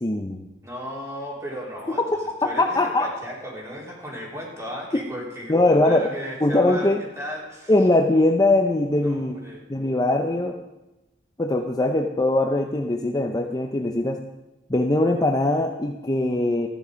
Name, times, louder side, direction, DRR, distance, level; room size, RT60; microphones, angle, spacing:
voice 1, 0.0-0.5 2.6-3.1 5.5-6.1 6.4-7.0 7.7-9.4 9.7-10.6 11.4-14.2 14.7-16.7, left 2 dB, 20° left, 3 dB, 0.7 m, -21 dB
voice 2, 0.6-2.0 2.4-7.7 8.9-9.6, equal, 15° right, -3 dB, 3.4 m, -35 dB
14.0 x 10.0 x 5.1 m, 0.99 s
head